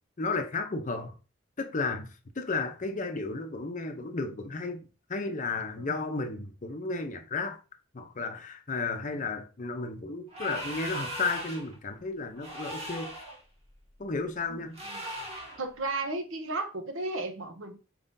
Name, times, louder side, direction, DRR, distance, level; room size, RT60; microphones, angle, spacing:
voice 1, 0.2-1.2 1.6-2.1 2.4-4.8 5.1-7.6 7.9-13.3 14.0-14.8, left 3 dB, 40° left, 0.6 m, -33 dB
sound 1, 10.3-11.7 12.4-13.4 14.7-15.6, equal, 30° right, 1.3 m, -38 dB
voice 2, 14.5-15.0 15.3-17.8, right 2 dB, 70° right, 0.9 m, -35 dB
4.7 x 3.6 x 2.6 m
head